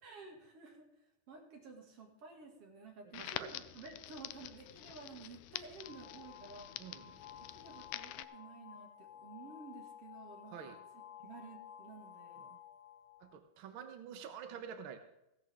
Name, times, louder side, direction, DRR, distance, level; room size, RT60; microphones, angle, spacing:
voice 1, 0.0-0.9 1.3-6.7 7.5-12.4, right 4 dB, 45° right, 1 dB, 3.1 m, -53 dB
Crackle, 3.1-8.2, left 14 dB, 80° left, 1.9 m, -47 dB
voice 2, 3.1-3.6 6.8-7.1 10.5-10.8 12.4-12.6 13.2-15.0, right 7 dB, 75° right, 6 dB, 1.2 m, -48 dB
sound 1, 5.8-13.4, left 9 dB, 65° left, 2.5 m, -54 dB
16.0 x 12.5 x 3.6 m, 0.87 s
omnidirectional pair, 3.9 m